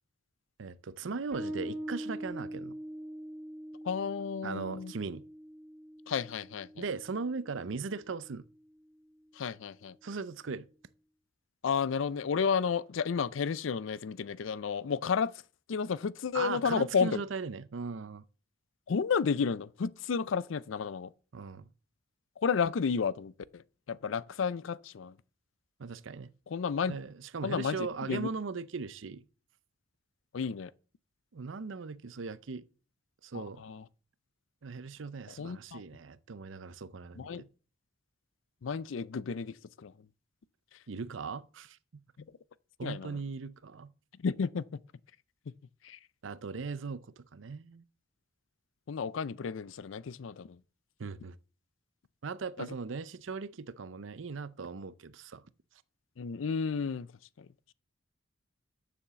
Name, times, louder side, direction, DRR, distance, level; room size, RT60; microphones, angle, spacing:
voice 1, 0.6-2.8 4.4-5.2 6.8-8.4 10.0-10.7 16.3-18.2 21.3-21.7 25.8-26.3 26.9-29.3 31.3-32.7 33.2-33.6 34.6-37.5 40.9-42.0 42.8-43.9 46.2-47.8 51.0-51.4 52.2-55.4, right 4 dB, 80° right, 0.6 m, -39 dB
Bass guitar, 1.3-8.5, right 1 dB, 50° right, 2.8 m, -43 dB
voice 2, 3.8-4.9 6.1-6.8 9.3-10.0 11.6-15.3 15.7-17.2 18.9-21.1 22.4-25.2 26.5-27.0 27.4-28.3 30.3-30.7 33.3-33.8 35.4-35.8 37.1-37.4 38.6-39.9 42.8-43.2 44.2-44.8 45.8-46.0 48.9-50.6 52.6-52.7 56.2-57.1 57.4-57.5, left 6 dB, 85° left, 0.5 m, -32 dB
7.1 x 7.0 x 6.8 m
head